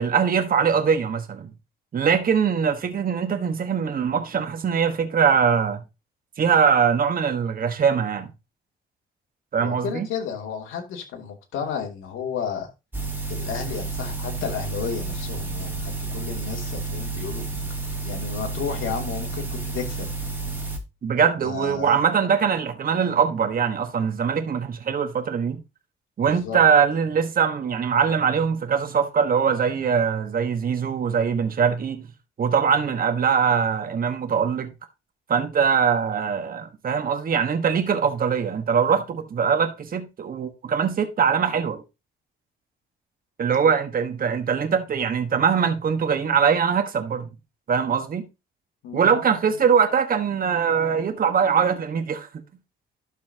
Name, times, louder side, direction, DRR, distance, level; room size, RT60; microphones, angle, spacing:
voice 1, 0.0-1.5 1.9-5.8 6.4-8.3 9.5-10.1 21.0-25.6 26.2-32.0 32.4-34.7 35.3-41.8 43.4-47.3 47.7-48.2 48.9-52.3, right 6 dB, 45° right, 1.5 m, -22 dB
voice 2, 9.6-12.7 13.3-17.4 18.0-20.1 21.4-21.9 26.2-26.6 48.8-49.5, left 7 dB, 85° left, 2.7 m, -32 dB
sound 1, 12.9-20.8, right 3 dB, 10° right, 2.9 m, -31 dB
12.0 x 5.8 x 2.9 m
cardioid pair, 90°, 20 cm